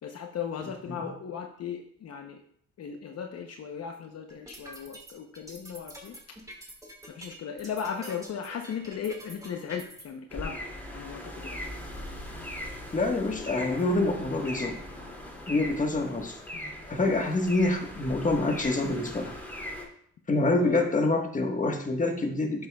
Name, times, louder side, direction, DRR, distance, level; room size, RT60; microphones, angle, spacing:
voice 1, 0.0-2.4 2.8-6.4 7.1-10.7 10.9-11.6 20.5-20.9, left 7 dB, 55° left, 4 dB, 0.9 m, -37 dB
sound 1, 4.3-10.0, right 1 dB, 10° right, 2.1 m, -46 dB
sound 2, 10.3-19.8, left 1 dB, 5° left, 2.4 m, -40 dB
voice 2, 12.9-14.8 15.5-16.4 16.9-19.3 20.3-22.7, left 2 dB, 25° left, 3 dB, 1.4 m, -26 dB
10.5 x 7.6 x 2.3 m, 0.65 s
cardioid pair, 90°, 30 cm